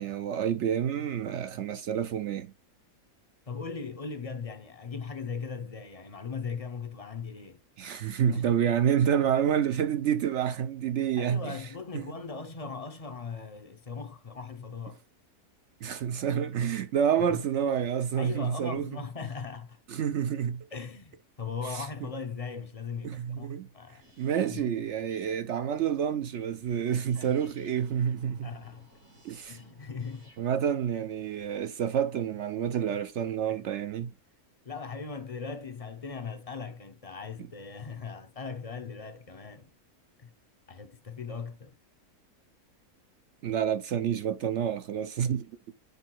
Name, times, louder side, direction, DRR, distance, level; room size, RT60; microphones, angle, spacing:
voice 1, 0.0-2.5 7.8-11.5 11.9-12.1 15.8-18.9 19.9-20.7 21.7-21.8 23.0-23.7 24.2-28.5 29.2-29.6 30.4-34.1 43.4-45.5, right 8 dB, 65° right, 0.7 m, -28 dB
voice 2, 3.5-7.6 8.3-8.5 11.2-15.0 17.3-17.4 18.2-19.8 20.7-23.5 23.7-24.0 24.4-24.7 27.1-27.4 28.4-28.9 29.5-30.3 33.5-33.6 34.6-39.7 40.2-40.3 40.7-41.7, left 5 dB, 35° left, 0.6 m, -39 dB
sound 1, 24.0-31.9, right 1 dB, 85° right, 4.9 m, -57 dB
8.3 x 3.8 x 4.5 m
omnidirectional pair, 1.6 m